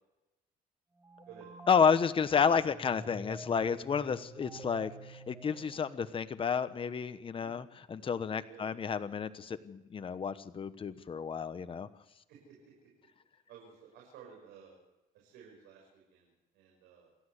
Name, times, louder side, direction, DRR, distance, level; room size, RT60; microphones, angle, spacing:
sound 1, 1.0-6.4, right 1 dB, 15° right, 2.6 m, -49 dB
voice 1, 1.7-11.9, left 6 dB, 30° left, 11 dB, 1.1 m, -31 dB
voice 2, 12.3-12.9 13.5-14.8 15.1-17.1, right 7 dB, 85° right, -1 dB, 6.1 m, -55 dB
27.5 x 12.0 x 8.2 m, 1.0 s
cardioid pair, 110°, 17 cm